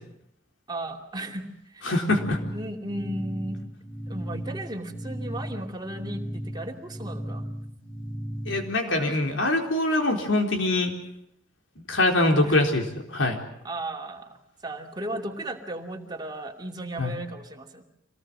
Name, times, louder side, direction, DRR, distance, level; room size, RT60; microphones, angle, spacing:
voice 1, 0.7-1.9 2.5-3.6 4.1-7.5 8.9-9.2 12.1-12.6 13.6-17.8, right 1 dB, 20° right, 2 dB, 2.7 m, -35 dB
voice 2, 1.9-2.4 8.5-10.9 11.9-12.8 13.1-13.4 17.0-17.2, left 2 dB, 70° left, 3 dB, 4.2 m, -23 dB
sound 1, 2.1-8.8, equal, 20° left, 2.1 m, -36 dB
26.0 x 19.0 x 7.7 m, 0.79 s
head